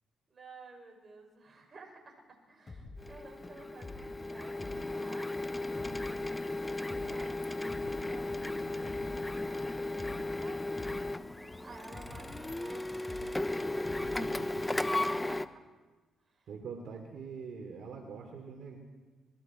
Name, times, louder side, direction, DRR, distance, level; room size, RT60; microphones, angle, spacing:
voice 1, 0.3-6.0 6.5-10.9 11.6-14.4 15.0-15.4 16.2-16.5, right 3 dB, 35° right, 1 dB, 6.7 m, -53 dB
sound 1, 2.7-15.0, left 2 dB, 30° left, 4.2 m, -50 dB
Printer, 3.0-15.5, left 2 dB, 10° left, 0.9 m, -35 dB
voice 2, 14.2-15.0 16.5-18.8, right 5 dB, 65° right, 2 dB, 3.1 m, -44 dB
26.5 x 22.5 x 4.6 m, 1.3 s
cardioid pair, 90°, 0 cm